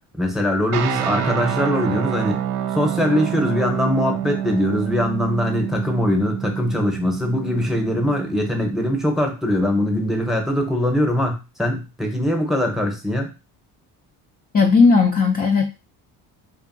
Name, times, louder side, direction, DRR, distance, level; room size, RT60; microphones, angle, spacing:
voice 1, 0.2-2.4 2.7-13.3, left 1 dB, ahead, 2 dB, 0.8 m, -22 dB
sound 1, 0.7-9.0, right 10 dB, 85° right, 0.5 m, -27 dB
voice 2, 14.5-15.6, left 4 dB, 20° left, 2 dB, 0.3 m, -15 dB
2.7 x 2.5 x 2.6 m, 0.29 s
supercardioid pair, 75°, 46 cm